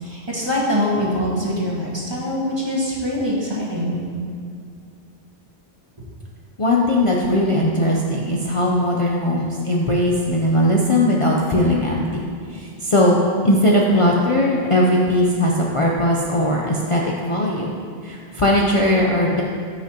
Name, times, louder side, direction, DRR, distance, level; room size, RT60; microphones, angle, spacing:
voice 1, 0.0-4.0, equal, 25° right, -5 dB, 1.7 m, -23 dB
voice 2, 6.6-12.2 12.5-17.7 18.0-19.4, left 1 dB, 35° left, -3 dB, 0.7 m, -19 dB
14.5 x 6.0 x 2.9 m, 2.2 s
omnidirectional pair, 1.1 m